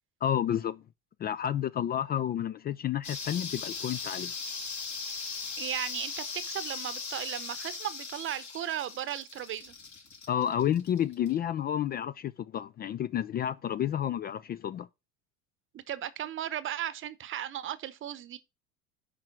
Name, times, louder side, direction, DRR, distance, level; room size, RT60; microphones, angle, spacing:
voice 1, 0.2-0.8 1.2-4.3 10.3-14.9, left 10 dB, 30° left, 0.4 m, -30 dB
sound 1, 3.0-11.3, left 5 dB, 65° left, 4.3 m, -39 dB
voice 2, 5.6-9.7 15.7-18.4, right 11 dB, 40° right, 0.8 m, -36 dB
7.5 x 5.0 x 6.0 m
supercardioid pair, 115°, 31 cm